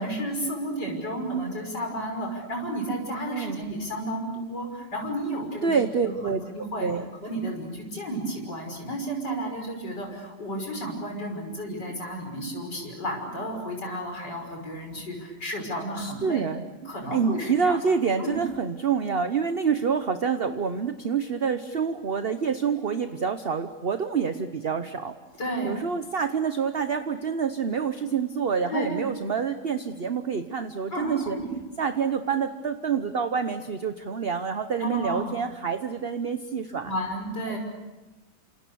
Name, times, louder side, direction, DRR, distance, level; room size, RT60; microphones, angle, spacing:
voice 1, 0.0-5.8 6.0-6.9 7.2-16.4 16.8-17.8 18.2-18.4 25.4-25.7 28.7-29.0 30.9-31.4 34.8-35.3 36.8-37.6, right 1 dB, 80° left, 2 dB, 6.5 m, -32 dB
voice 2, 3.1-3.6 5.6-6.4 6.8-7.1 16.0-25.2 25.6-31.4 31.8-36.9 37.5-37.6, right 6 dB, 40° right, 9 dB, 1.1 m, -27 dB
29.0 x 27.0 x 7.0 m, 1.1 s
omnidirectional pair, 1.8 m